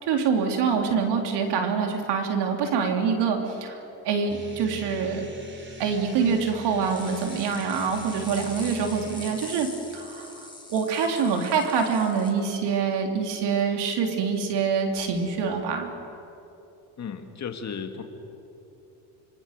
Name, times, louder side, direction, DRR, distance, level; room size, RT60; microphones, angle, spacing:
voice 1, 0.0-5.2 5.8-15.9, right 6 dB, 70° right, 3 dB, 3.6 m, -25 dB
sound 1, 4.3-9.3, right 2 dB, 25° right, 4.8 m, -43 dB
sound 2, 6.8-12.3, left 2 dB, 10° left, 4.3 m, -43 dB
voice 2, 17.0-18.0, left 6 dB, 40° left, 5 dB, 2.5 m, -35 dB
26.0 x 24.5 x 6.8 m, 2.9 s
supercardioid pair, 90°, 42 cm